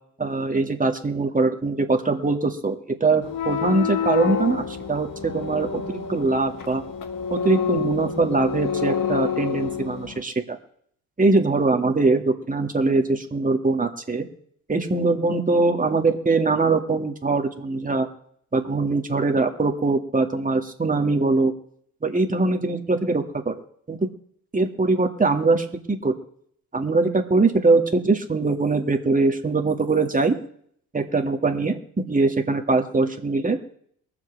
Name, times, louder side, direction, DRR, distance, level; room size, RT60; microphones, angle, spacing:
voice 1, 0.2-6.8 7.3-10.6 11.2-14.3 14.7-18.1 18.5-21.5 22.0-23.5 23.9-24.1 24.5-26.1 26.7-30.4 30.9-33.6, right 3 dB, 20° right, 4 dB, 2.1 m, -22 dB
sound 1, 3.2-10.2, left 7 dB, 50° left, 1.7 m, -28 dB
23.0 x 7.8 x 3.4 m, 0.65 s
hypercardioid pair, 55°, 42 cm